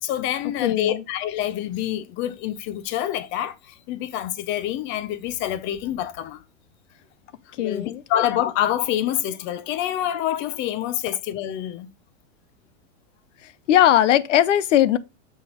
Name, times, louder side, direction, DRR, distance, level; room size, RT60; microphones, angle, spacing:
voice 1, 0.0-6.4 7.5-11.9, left 11 dB, 30° left, 0.7 m, -27 dB
voice 2, 0.6-1.0 7.6-8.0 13.4-15.0, left 11 dB, 85° left, 0.8 m, -19 dB
6.3 x 5.5 x 3.6 m
supercardioid pair, 140°, 36 cm